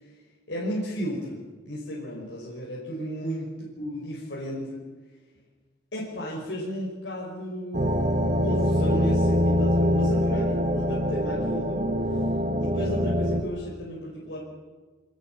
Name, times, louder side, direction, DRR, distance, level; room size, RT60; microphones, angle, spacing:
voice 1, 0.5-3.5 3.8-4.9 5.9-12.0 12.6-14.4, equal, 90° left, -4 dB, 5.6 m, -34 dB
sound 1, 7.7-13.4, equal, 45° right, 2.5 m, -24 dB
26.5 x 19.5 x 7.6 m, 1.4 s
head